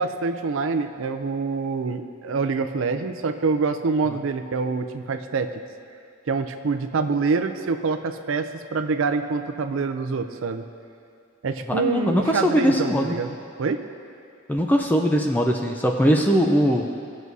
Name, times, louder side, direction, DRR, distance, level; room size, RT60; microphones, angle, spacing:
voice 1, 0.0-5.5 6.3-10.6 11.4-13.8, right 4 dB, 70° right, 7 dB, 0.5 m, -26 dB
voice 2, 11.7-13.1 14.5-17.0, equal, 10° left, 2 dB, 0.4 m, -21 dB
17.0 x 6.2 x 2.7 m, 2.4 s
head